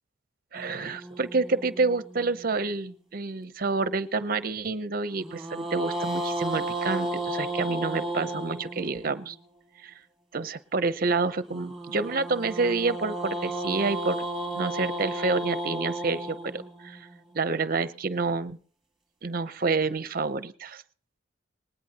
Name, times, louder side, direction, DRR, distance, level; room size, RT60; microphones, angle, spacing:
sound 1, 0.5-3.0 5.2-9.4 11.5-17.7, right 1 dB, ahead, 2.7 m, -34 dB
voice 1, 0.5-9.3 9.8-9.9 10.3-14.3 14.5-17.0 17.3-18.6 19.2-20.8, right 3 dB, 50° right, 14 dB, 0.7 m, -28 dB
19.5 x 19.0 x 2.9 m, 0.42 s
head